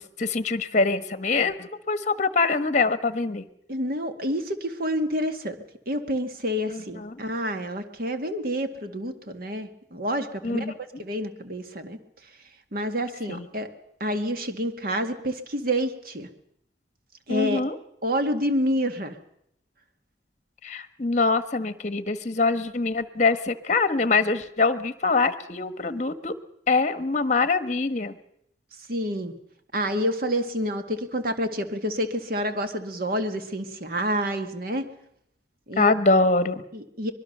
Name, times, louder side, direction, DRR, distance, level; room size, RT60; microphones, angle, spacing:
voice 1, 0.0-3.5 6.7-7.2 10.4-11.0 13.3-13.5 17.3-17.8 20.6-26.3 26.7-28.2 35.8-36.6, left 3 dB, 40° left, 11 dB, 1.2 m, -24 dB
voice 2, 3.7-5.6 5.9-10.7 11.0-12.0 12.7-13.7 14.0-16.3 17.3-17.6 18.0-19.2 28.9-29.3 29.7-34.8 35.7-35.9 36.7-37.1, equal, 55° right, 7 dB, 1.9 m, -28 dB
24.5 x 21.5 x 6.7 m, 0.75 s
head